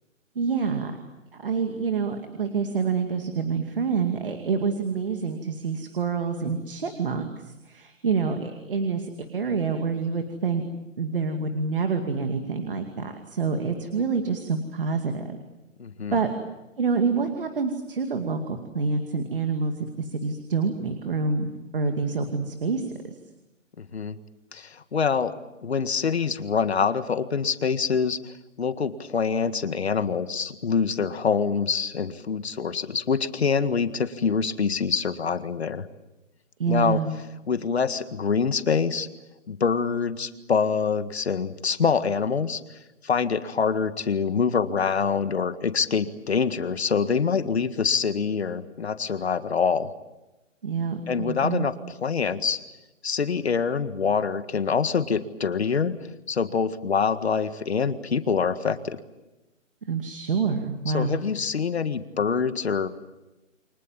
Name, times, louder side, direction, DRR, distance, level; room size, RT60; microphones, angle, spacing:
voice 1, 0.4-1.0 1.3-10.6 11.0-15.4 16.1-16.3 16.8-22.9 36.6-37.1 50.6-51.7 59.9-61.2, right 5 dB, 45° right, 6 dB, 2.4 m, -27 dB
voice 2, 15.8-16.2 23.8-24.2 24.5-25.4 25.6-35.9 36.7-37.0 37.5-39.1 39.5-42.6 43.0-49.9 51.1-51.7 52.0-52.6 53.0-59.0 60.9-62.9, left 6 dB, 55° left, 10 dB, 1.8 m, -25 dB
30.0 x 24.5 x 7.5 m, 1.0 s
hypercardioid pair, 175°, 38 cm